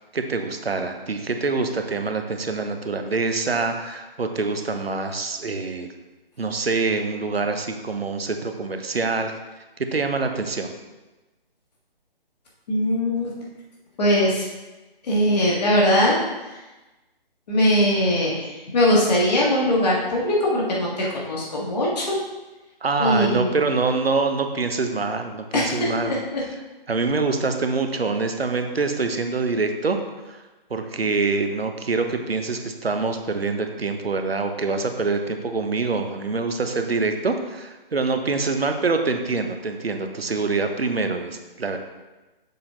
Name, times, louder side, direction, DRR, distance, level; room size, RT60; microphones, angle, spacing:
voice 1, 0.1-5.9 6.4-9.3 9.8-10.7 22.8-26.1 26.9-30.0 30.3-30.4 30.7-41.8, right 3 dB, 90° right, 6 dB, 0.9 m, -25 dB
voice 2, 12.7-13.3 14.0-14.5 15.0-16.2 17.5-22.2 23.0-23.5 25.5-26.2, left 1 dB, 45° left, -4 dB, 1.9 m, -21 dB
6.8 x 4.1 x 3.9 m, 1.1 s
figure-of-eight pair, 145°, 29 cm